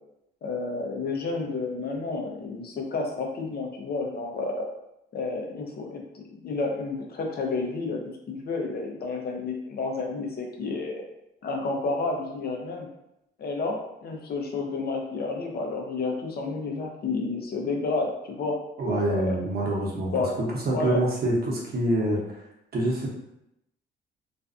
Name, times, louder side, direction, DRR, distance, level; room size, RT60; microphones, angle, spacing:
voice 1, 0.4-4.7 5.1-8.0 8.3-11.0 11.4-12.9 13.4-18.6 18.9-19.4 20.1-20.4 20.7-21.1, left 3 dB, 50° left, 1 dB, 0.6 m, -30 dB
voice 2, 18.8-20.1 20.4-22.2 22.7-23.1, right 1 dB, 50° right, -3 dB, 0.8 m, -26 dB
2.5 x 2.2 x 2.4 m, 0.84 s
cardioid pair, 90°, 20 cm